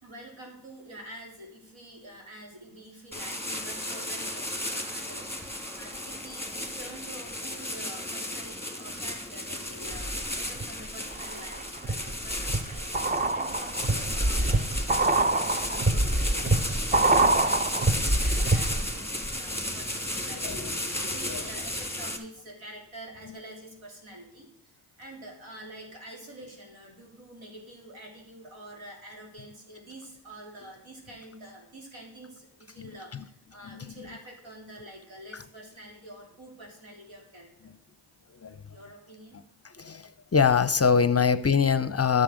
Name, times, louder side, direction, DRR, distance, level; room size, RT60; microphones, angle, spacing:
voice 1, 0.0-4.5 4.7-37.7 38.7-39.4, right 1 dB, 75° right, 0 dB, 3.5 m, -47 dB
sound 1, 3.1-22.2, left 1 dB, 5° left, 2.4 m, -34 dB
sound 2, 9.9-10.6 11.1-19.0 19.2-19.3, right 2 dB, 15° right, 0.6 m, -25 dB
voice 2, 21.0-21.3 38.4-38.5 39.8-40.0 40.3-42.2, left 6 dB, 30° left, 14 dB, 0.6 m, -23 dB
10.5 x 6.9 x 6.3 m, 0.77 s
supercardioid pair, 50°, 48 cm